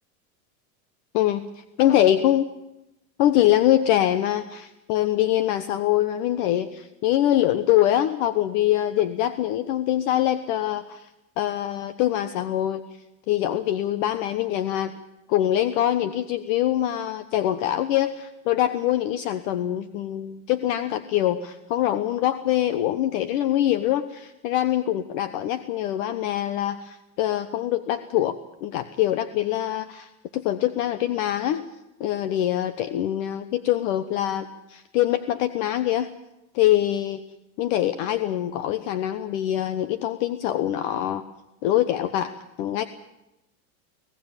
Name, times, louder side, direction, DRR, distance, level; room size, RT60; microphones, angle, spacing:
voice 1, 1.8-2.4 3.2-11.1 11.4-12.8 13.3-14.9 15.3-31.7 32.0-36.1 36.5-37.2 37.6-41.2 41.6-42.9, left 12 dB, 60° left, 11 dB, 1.2 m, -24 dB
25.0 x 17.5 x 7.4 m, 0.93 s
supercardioid pair, 145°, 43 cm